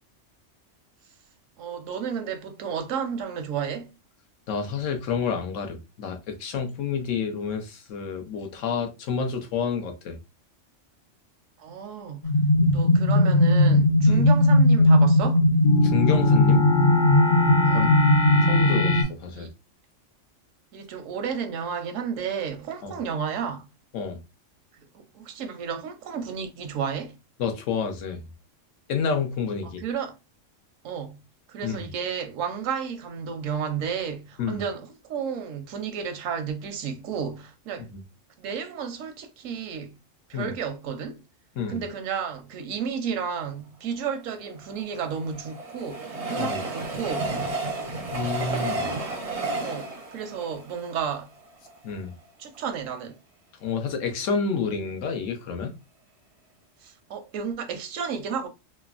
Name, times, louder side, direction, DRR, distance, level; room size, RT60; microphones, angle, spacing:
voice 1, 1.6-3.9 11.6-12.3 12.7-15.4 17.6-18.0 19.3-19.5 20.7-23.7 24.9-27.2 29.6-30.2 30.8-31.2 31.5-37.9 38.4-40.0 40.3-41.2 41.7-47.4 49.6-51.3 52.4-53.2 56.8-58.5, right 7 dB, 80° right, 1.0 m, -32 dB
voice 2, 4.5-10.2 12.5-12.7 14.1-14.3 15.8-16.6 17.7-17.9 18.5-19.5 22.8-22.9 23.9-24.2 27.4-28.2 28.9-29.8 31.6-31.8 34.4-34.6 37.9-38.0 40.3-40.5 41.6-41.8 46.4-46.6 48.1-48.9 51.8-52.1 53.6-55.7, left 6 dB, 80° left, 1.1 m, -29 dB
sound 1, 12.2-19.0, left 1 dB, 50° left, 0.6 m, -18 dB
Train, 44.5-51.7 52.3-52.4 52.6-52.7, right 2 dB, 45° right, 0.4 m, -32 dB
3.3 x 2.0 x 2.3 m
omnidirectional pair, 1.3 m